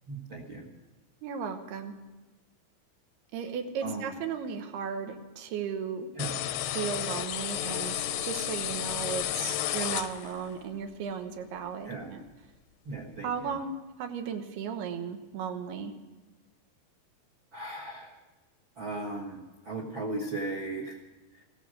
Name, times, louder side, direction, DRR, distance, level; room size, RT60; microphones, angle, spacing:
voice 1, 0.1-0.7 3.8-4.2 6.2-6.4 11.8-12.1 12.8-13.6 17.5-18.2 18.7-21.0 21.3-21.4, right 2 dB, 55° right, 0 dB, 1.4 m, -37 dB
voice 2, 1.2-1.9 3.3-6.1 6.7-12.2 13.2-13.7 14.0-15.9, right 6 dB, 85° right, 6 dB, 3.2 m, -35 dB
sound 1, 6.2-10.5, left 12 dB, 75° left, 2.3 m, -32 dB
15.5 x 14.0 x 6.3 m, 1.2 s
omnidirectional pair, 4.5 m